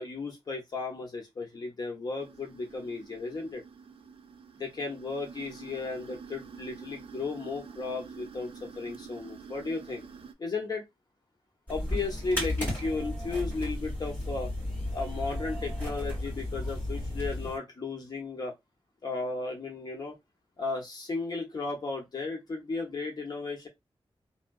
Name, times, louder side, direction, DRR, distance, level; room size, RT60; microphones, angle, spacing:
voice 1, 0.0-3.6 4.6-10.0 10.4-10.8 11.7-14.5 14.9-18.5 19.0-20.1 20.6-23.7, left 3 dB, 40° left, 1.0 m, -35 dB
sound 1, 2.2-10.3, right 6 dB, 70° right, 0.4 m, -47 dB
sound 2, 11.7-17.6, left 1 dB, 15° left, 2.4 m, -34 dB
3.3 x 2.7 x 2.4 m
wide cardioid pair, 175°, 10 cm